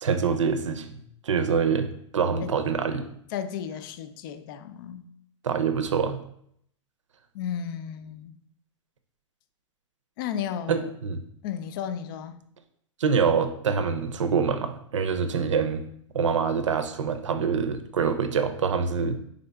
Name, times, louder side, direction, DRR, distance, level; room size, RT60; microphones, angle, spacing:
voice 1, 0.0-1.9 2.1-3.1 5.4-6.2 10.7-11.2 13.0-15.8 16.1-19.2, right 6 dB, 70° right, 9 dB, 0.6 m, -25 dB
voice 2, 3.3-5.1 7.3-8.4 10.2-10.9 11.4-12.4, left 8 dB, 45° left, 10 dB, 0.4 m, -34 dB
4.1 x 3.7 x 3.3 m, 0.69 s
figure-of-eight pair, 105°, 16 cm